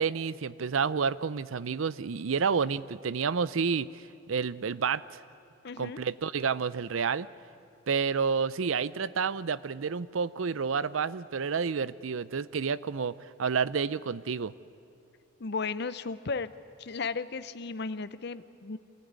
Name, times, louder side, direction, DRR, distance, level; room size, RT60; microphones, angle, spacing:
voice 1, 0.0-4.0 4.3-5.2 5.8-7.3 7.9-14.5, right 5 dB, 80° right, 18 dB, 0.6 m, -30 dB
voice 2, 5.6-6.0 15.4-16.5 16.8-18.8, left 4 dB, 55° left, 14 dB, 0.7 m, -35 dB
24.0 x 15.5 x 9.6 m, 2.6 s
head